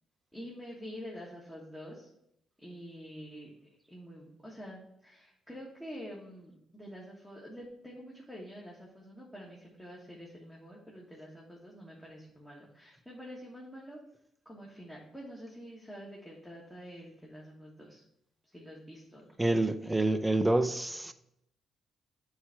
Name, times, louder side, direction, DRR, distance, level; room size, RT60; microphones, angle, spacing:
voice 1, 0.3-2.1 2.6-3.5 3.9-14.0 14.4-18.0 18.5-19.3, equal, 5° left, 1.5 m, -47 dB
voice 2, 19.4-21.1, right 2 dB, 10° right, 0.5 m, -27 dB
8.0 x 3.3 x 5.8 m
cardioid pair, 90°, 0 cm